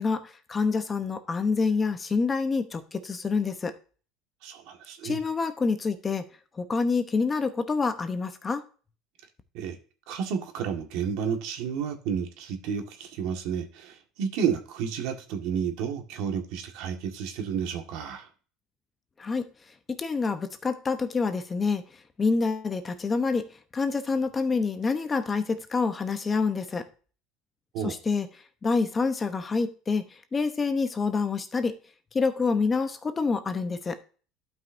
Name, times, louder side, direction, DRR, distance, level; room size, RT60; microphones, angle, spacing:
voice 1, 0.0-3.7 5.0-6.2 6.6-8.6 19.2-19.5 19.9-21.8 22.2-23.4 23.7-26.9 27.8-28.3 28.6-30.0 30.3-31.8 32.1-34.0, left 4 dB, 20° left, 0.9 m, -27 dB
voice 2, 4.4-5.2 9.5-9.8 10.1-18.3 27.7-27.9, right 7 dB, 70° right, 1.6 m, -31 dB
12.0 x 5.4 x 2.6 m
cardioid pair, 135°, 0 cm